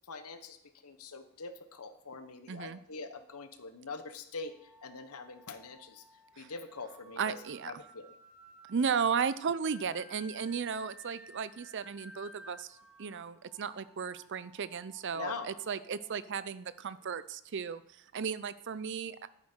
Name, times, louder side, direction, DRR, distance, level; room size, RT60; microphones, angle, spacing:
voice 1, 0.1-0.6 0.8-6.0 6.4-7.4 7.6-8.2 15.1-15.5, left 4 dB, 80° left, 9 dB, 1.1 m, -43 dB
voice 2, 2.5-2.8 6.4-6.5 7.2-7.7 8.7-19.3, right 6 dB, 55° right, 15 dB, 0.5 m, -35 dB
sound 1, 4.4-17.2, equal, 5° right, 1.3 m, -57 dB
11.0 x 8.7 x 4.5 m, 0.74 s
head